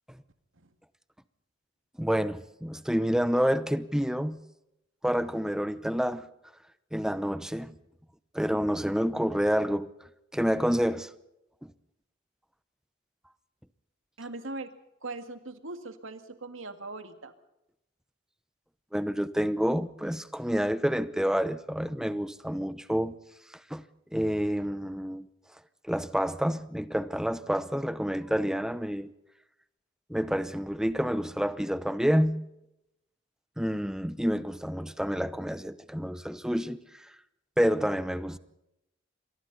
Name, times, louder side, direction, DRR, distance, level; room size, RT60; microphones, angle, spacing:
voice 1, 2.0-4.4 5.0-6.3 6.9-7.7 8.3-9.9 10.3-11.1 11.6-11.7 18.9-23.2 23.7-23.8 24.1-25.3 25.8-29.1 30.1-32.5 33.6-36.8 37.6-38.4, equal, 5° right, 0.8 m, -28 dB
voice 2, 14.2-14.7 15.0-17.3, right 2 dB, 80° right, 2.1 m, -40 dB
28.5 x 23.5 x 4.1 m
head